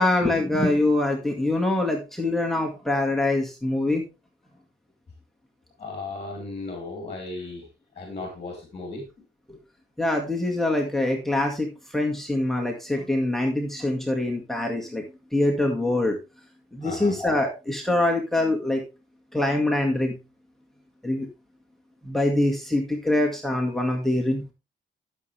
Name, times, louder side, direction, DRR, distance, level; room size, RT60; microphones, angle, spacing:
voice 1, 0.0-4.0 9.5-9.6 10.0-15.0 15.3-16.2 16.7-18.8 19.3-20.2 21.0-21.3 22.0-24.5, left 1 dB, ahead, 2 dB, 1.9 m, -24 dB
voice 2, 5.8-7.6 8.0-9.0 16.8-17.1, left 3 dB, 30° left, 3 dB, 3.0 m, -35 dB
12.0 x 7.0 x 3.3 m, 0.28 s
cardioid pair, 90°, 20 cm